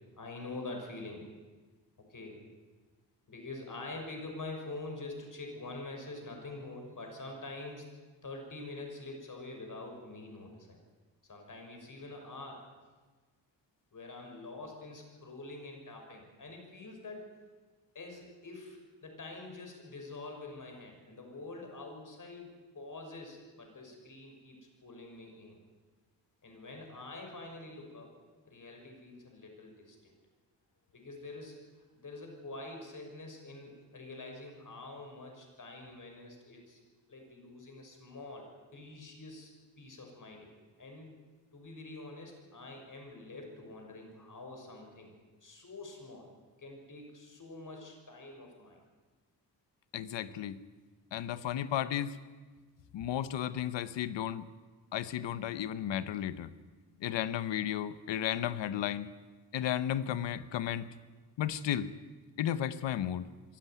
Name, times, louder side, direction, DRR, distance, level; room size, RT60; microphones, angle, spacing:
voice 1, 0.2-1.3 2.0-2.4 3.3-7.9 8.2-10.8 11.2-12.7 13.9-17.3 17.9-25.6 26.4-28.1 28.4-30.1 30.9-36.8 37.1-39.5 39.8-40.5 40.8-41.1 41.5-45.1 45.4-46.3 46.6-48.8, left 2 dB, 45° left, 2 dB, 6.2 m, -46 dB
voice 2, 49.9-50.6 51.1-52.2 52.9-54.4 54.9-56.5 57.0-59.1 59.5-60.9 61.4-61.9 62.4-63.3, left 10 dB, 90° left, 14 dB, 1.0 m, -33 dB
23.0 x 13.5 x 9.4 m, 1.3 s
cardioid pair, 70°, 42 cm